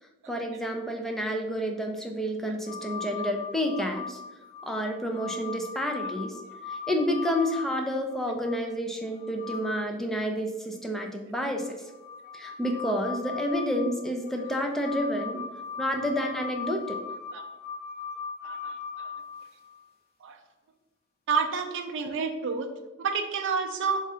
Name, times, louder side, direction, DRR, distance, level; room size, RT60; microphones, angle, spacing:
voice 1, 0.3-4.2 4.6-6.4 6.7-11.8 12.3-15.4 15.8-17.0, equal, ahead, 2 dB, 0.4 m, -29 dB
sound 1, 2.7-8.5 9.0-9.9 10.2-10.3 11.4-19.8 21.9-22.0, left 5 dB, 50° left, 0.7 m, -39 dB
voice 2, 18.4-19.1 20.2-20.4 21.3-22.7 23.0-24.0, right 5 dB, 60° right, 4 dB, 0.4 m, -29 dB
3.6 x 2.4 x 4.2 m, 1.0 s
head